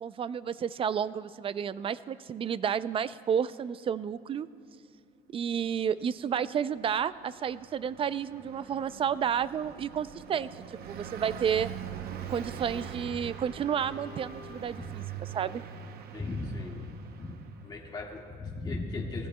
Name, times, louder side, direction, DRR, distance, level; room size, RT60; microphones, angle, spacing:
voice 1, 0.0-4.5 5.3-10.5 10.9-11.7 12.3-15.6, right 8 dB, 35° right, 16 dB, 0.4 m, -31 dB
Car passing by, 6.8-17.8, right 8 dB, 65° right, 0.7 m, -43 dB
sound 1, 12.1-16.1, left 3 dB, 45° left, 2.7 m, -54 dB
voice 2, 16.1-17.4 17.6-19.3, left 3 dB, 25° left, -2 dB, 1.8 m, -37 dB
20.0 x 14.0 x 2.2 m, 2.3 s
cardioid pair, 110°, 17 cm